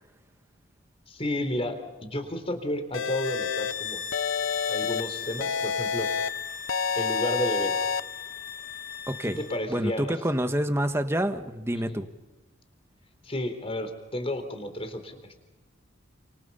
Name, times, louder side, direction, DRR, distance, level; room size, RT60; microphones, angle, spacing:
voice 1, 1.1-4.0 4.7-6.1 6.9-7.7 9.2-10.1 11.7-12.0 13.2-15.4, left 1 dB, 30° left, 7 dB, 3.8 m, -32 dB
sound 1, 2.9-3.7 4.1-5.0 5.4-6.3 6.7-8.0, left 6 dB, 70° left, 0.8 m, -28 dB
sound 2, 3.2-9.6, left 7 dB, 45° left, 1.7 m, -37 dB
voice 2, 9.1-9.4 9.7-12.1, equal, 15° right, 8 dB, 1.5 m, -27 dB
30.0 x 28.0 x 5.6 m, 1.2 s
head